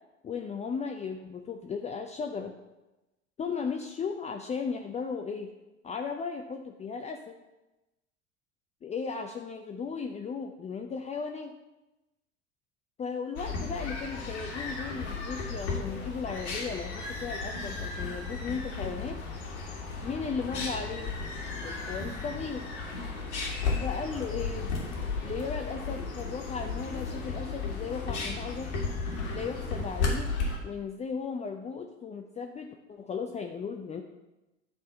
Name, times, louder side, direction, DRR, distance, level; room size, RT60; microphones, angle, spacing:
voice 1, 0.2-2.5 3.4-5.5 5.8-7.4 8.8-11.5 13.0-19.2 20.0-21.2 21.6-22.6 23.8-24.7 25.2-28.7 29.3-30.3 30.6-34.0, left 5 dB, 20° left, 3 dB, 0.5 m, -36 dB
sound 1, 13.4-30.6, left 4 dB, 70° left, 2.0 m, -34 dB
10.5 x 3.5 x 5.4 m, 1.0 s
figure-of-eight pair, 70°, 36 cm